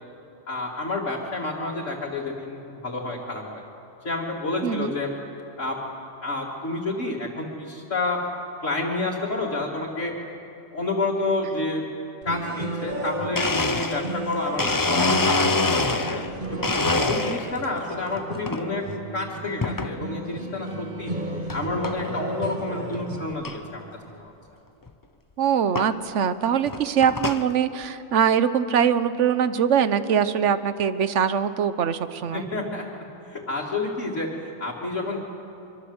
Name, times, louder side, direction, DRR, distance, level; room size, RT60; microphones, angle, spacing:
voice 1, 0.5-3.6 4.0-5.1 5.6-5.8 6.2-8.2 8.6-10.1 10.7-11.8 12.2-16.7 17.1-18.8 19.1-21.1 21.5-24.3 32.3-32.8 33.3-35.2, left 2 dB, 75° left, -6 dB, 3.0 m, -29 dB
voice 2, 4.6-4.9 25.4-32.5, right 8 dB, 70° right, 12 dB, 1.2 m, -22 dB
sound 1, 12.2-23.3, right 1 dB, 40° right, 1.6 m, -33 dB
Domestic sounds home sounds, 13.0-13.1 13.4-16.3 16.6-17.7 18.1-18.6 19.6-19.9 20.5-20.6 21.5-21.6 21.8-22.2 22.6-22.7 22.9-23.0 23.4-23.5 24.9-25.0 25.8-25.9 26.5-27.5, left 3 dB, 20° left, 0.6 m, -25 dB
25.0 x 24.5 x 8.0 m, 2.8 s
omnidirectional pair, 1.3 m